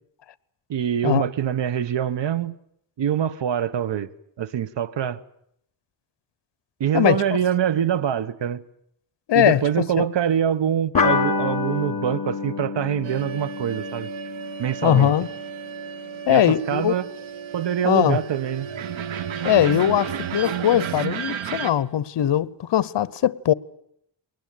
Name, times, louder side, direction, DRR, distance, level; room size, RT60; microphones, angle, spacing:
voice 1, 0.7-2.6 3.0-4.1 4.4-5.2 6.8-8.6 9.3-14.1 14.6-15.1 16.3-17.1 17.5-18.7, right 9 dB, 65° right, 1.2 m, -24 dB
voice 2, 9.3-9.6 10.0-10.1 14.8-15.3 16.3-16.9 17.8-18.2 19.4-23.5, left 11 dB, 65° left, 0.9 m, -20 dB
sound 1, 10.9-15.9, left 4 dB, 45° left, 3.6 m, -27 dB
sound 2, 13.0-21.7, right 8 dB, 90° right, 1.4 m, -33 dB
22.0 x 19.5 x 9.0 m
cardioid pair, 100°, 46 cm